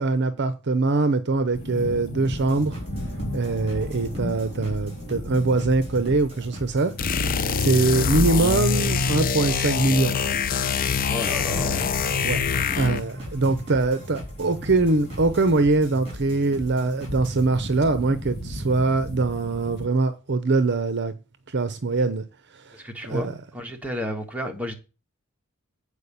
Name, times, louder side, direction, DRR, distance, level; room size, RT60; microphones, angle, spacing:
voice 1, 0.0-2.8 3.3-6.9 7.6-10.1 12.2-12.4 12.8-21.1 21.5-22.2 22.7-22.8 23.1-23.3, right 3 dB, 50° right, 0.7 m, -23 dB
sound 1, 1.5-19.9, left 1 dB, 70° left, 3.3 m, -37 dB
sound 2, 2.2-17.5, equal, 30° right, 4.2 m, -40 dB
sound 3, 7.0-13.1, left 5 dB, 40° left, 0.5 m, -24 dB
voice 2, 11.1-12.0 12.5-12.8 22.7-24.7, left 1 dB, 5° right, 1.6 m, -32 dB
8.3 x 4.9 x 6.9 m
head